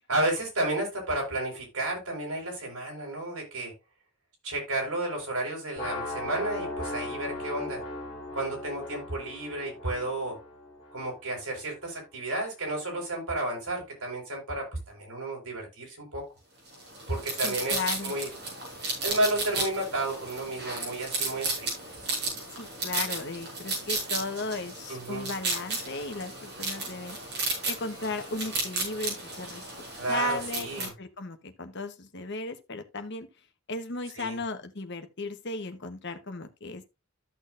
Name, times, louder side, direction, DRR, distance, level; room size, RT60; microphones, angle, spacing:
voice 1, 0.1-3.7 4.4-7.8 8.3-10.4 10.9-16.3 17.1-18.3 19.0-21.7 24.9-25.3 29.9-30.9 34.1-34.4, right 1 dB, 80° right, 4.8 m, -32 dB
sound 1, 5.8-11.7, left 2 dB, 25° left, 3.4 m, -38 dB
sound 2, 16.7-30.9, right 3 dB, 50° right, 5.8 m, -34 dB
voice 2, 17.4-18.1 22.5-27.2 27.7-33.3 33.7-36.9, left 2 dB, 50° left, 1.1 m, -35 dB
13.5 x 6.3 x 2.6 m
head